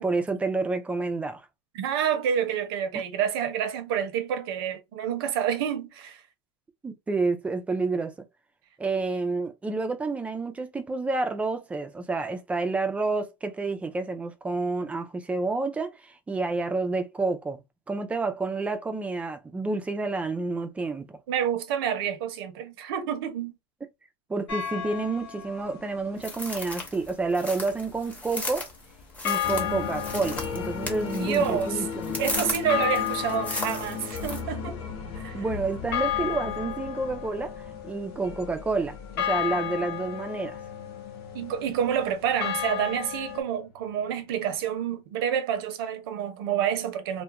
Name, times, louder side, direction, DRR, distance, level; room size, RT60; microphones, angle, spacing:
voice 1, 0.0-1.4 2.9-3.0 6.8-8.3 8.8-17.6 17.9-21.2 24.3-28.7 29.2-32.2 35.3-40.6, right 3 dB, 10° right, 0.3 m, -29 dB
voice 2, 1.7-6.2 21.3-23.5 31.1-31.9 32.2-34.8 35.1-35.4 41.3-47.2, right 8 dB, 70° right, 0.7 m, -28 dB
sound 1, 24.5-25.6 29.2-43.4, left 10 dB, 90° left, 0.7 m, -34 dB
sound 2, 26.2-34.4, left 2 dB, 10° left, 0.7 m, -36 dB
sound 3, 29.4-44.5, left 6 dB, 40° left, 0.9 m, -38 dB
2.3 x 2.1 x 2.8 m
supercardioid pair, 140°, 13 cm